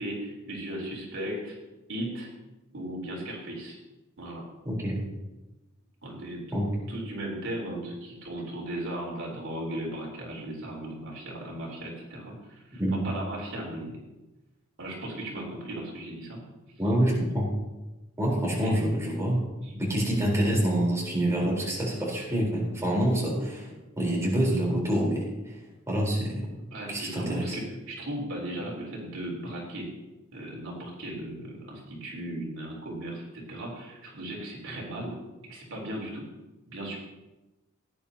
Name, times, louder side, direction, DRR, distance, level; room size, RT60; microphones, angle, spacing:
voice 1, 0.0-1.6 1.9-2.3 2.7-3.8 4.2-4.4 6.0-14.0 14.8-16.5 18.5-18.7 19.6-19.7 26.7-29.9 30.3-35.2 35.5-36.2 36.7-37.0, right 1 dB, 65° right, -2 dB, 3.5 m, -36 dB
voice 2, 4.7-5.0 6.5-6.7 12.8-13.0 16.8-17.5 18.2-19.4 19.7-25.6 25.9-26.5 26.9-27.6, right 1 dB, 15° right, -4 dB, 3.8 m, -26 dB
18.0 x 10.0 x 2.8 m, 1.0 s
head